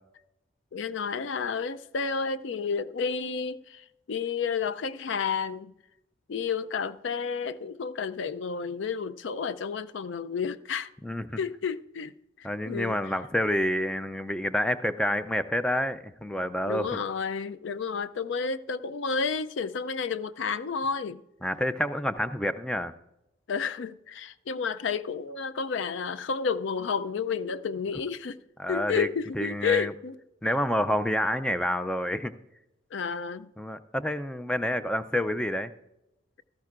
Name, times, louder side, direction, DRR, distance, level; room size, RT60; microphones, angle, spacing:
voice 1, 0.7-5.7 6.3-10.9 11.4-12.1 12.4-13.0 16.7-21.2 23.5-28.4 28.7-30.2 32.9-33.5, left 5 dB, 75° left, 0.4 m, -31 dB
voice 2, 11.0-11.4 12.4-17.0 21.4-22.9 28.6-29.1 29.3-29.9 30.4-32.3 33.6-35.7, equal, 5° left, 0.3 m, -28 dB
16.5 x 13.5 x 2.5 m
head